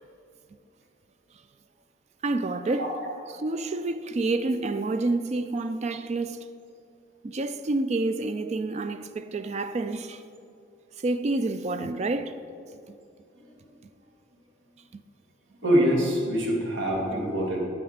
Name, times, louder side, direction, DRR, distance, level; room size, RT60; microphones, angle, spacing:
voice 1, 2.2-2.9 3.3-6.5 7.2-10.2 11.0-12.3 12.9-13.0 14.9-15.0, right 2 dB, 35° right, 0.3 m, -28 dB
voice 2, 15.6-17.6, equal, 80° right, 2.2 m, -24 dB
9.8 x 4.7 x 7.9 m
head